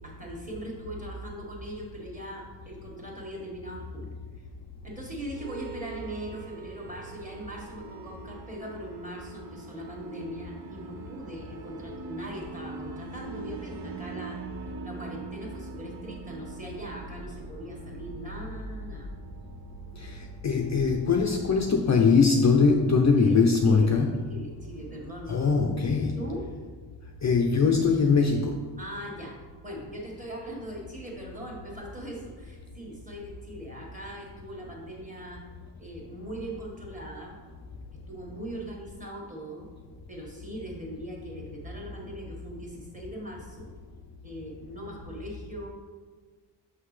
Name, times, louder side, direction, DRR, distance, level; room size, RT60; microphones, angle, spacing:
voice 1, 0.0-4.1 4.4-4.5 4.8-14.4 14.8-19.1 23.2-23.4 23.6-23.9 24.3-26.4 28.8-29.4 29.6-35.4 35.8-37.3 38.1-39.7 40.1-43.7 44.2-45.7, equal, 15° right, -2 dB, 1.5 m, -40 dB
sound 1, 5.3-21.9, right 4 dB, 65° right, 0.7 m, -43 dB
voice 2, 20.4-24.2 25.3-26.2 27.2-28.6, left 4 dB, 40° left, 2 dB, 0.5 m, -22 dB
6.2 x 5.7 x 3.2 m, 1.5 s
wide cardioid pair, 115°, 45 cm